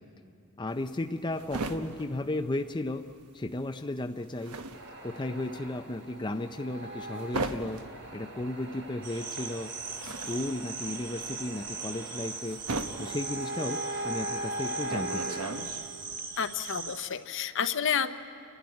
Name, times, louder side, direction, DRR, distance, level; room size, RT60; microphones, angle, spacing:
voice 1, 0.6-3.0 3.3-4.6 5.0-7.8 8.1-9.7 10.0-12.6 13.0-15.4, left 2 dB, 20° left, 6 dB, 0.5 m, -34 dB
sound 1, 0.7-3.2 3.5-16.1, right 3 dB, 90° right, 1.2 m, -39 dB
sound 2, 4.7-15.5, right 1 dB, 60° right, 7.0 m, -40 dB
sound 3, 9.0-17.1, right 5 dB, 40° right, 1.8 m, -40 dB
voice 2, 16.4-18.1, left 7 dB, 60° left, 9 dB, 0.8 m, -30 dB
30.0 x 12.0 x 9.6 m, 2.7 s
head